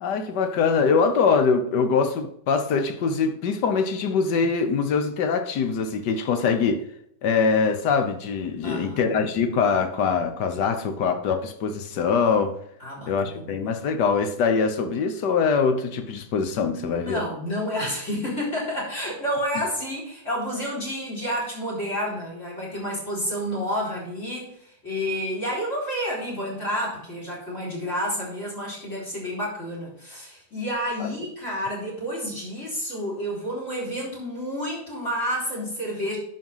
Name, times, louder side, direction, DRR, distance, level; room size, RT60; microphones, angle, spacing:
voice 1, 0.0-6.8 7.2-12.5 13.1-17.2 31.0-31.1, left 5 dB, 75° left, 1.6 m, -23 dB
voice 2, 8.6-9.1 12.8-13.5 16.7-24.5 24.8-36.2, equal, 45° left, 4.6 m, -30 dB
11.0 x 5.2 x 5.6 m
omnidirectional pair, 1.8 m